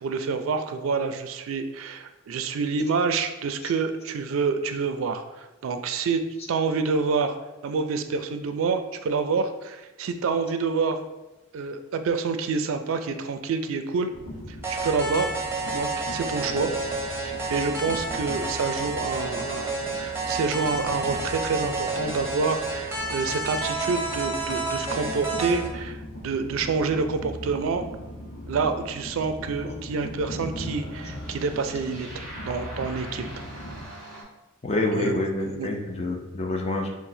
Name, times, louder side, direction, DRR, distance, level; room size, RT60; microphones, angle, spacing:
voice 1, 0.0-6.2 6.5-7.4 7.6-11.0 11.5-14.1 14.5-15.3 15.7-16.7 17.2-19.7 20.0-26.0 26.2-27.8 28.5-32.1 32.5-33.2 35.0-35.2 35.6-35.7, right 4 dB, 85° right, 8 dB, 0.4 m, -27 dB
Train, 14.1-33.9, left 1 dB, 85° left, 0.9 m, -39 dB
sound 1, 14.6-25.7, right 3 dB, 15° right, 0.7 m, -30 dB
sound 2, 27.7-34.2, right 1 dB, 5° left, 1.1 m, -46 dB
voice 2, 34.6-36.9, left 2 dB, 30° left, 1 dB, 0.5 m, -27 dB
6.0 x 2.1 x 2.7 m, 1.1 s
head